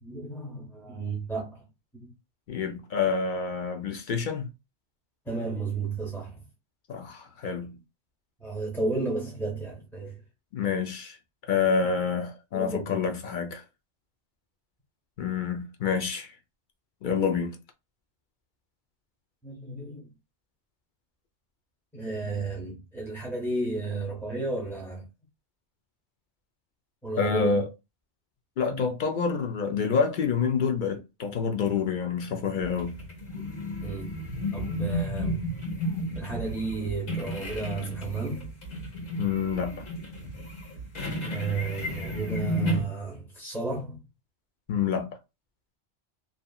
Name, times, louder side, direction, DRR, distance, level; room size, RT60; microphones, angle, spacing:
voice 1, 0.0-1.7 1.9-2.1 5.3-6.4 8.4-10.2 12.5-13.0 19.4-20.1 21.9-25.1 27.0-27.7 28.7-29.0 33.3-34.1 34.5-35.6 36.1-38.5 41.2-44.0, right 3 dB, 5° left, 0.5 m, -33 dB
voice 2, 2.5-4.5 6.9-7.8 10.5-11.2 11.5-13.6 15.2-16.3 17.0-17.6 27.2-27.6 28.6-33.0 39.2-39.8 44.7-45.1, left 6 dB, 60° left, 0.6 m, -27 dB
sound 1, 32.6-42.8, equal, 85° left, 1.4 m, -33 dB
2.7 x 2.6 x 2.3 m
omnidirectional pair, 1.2 m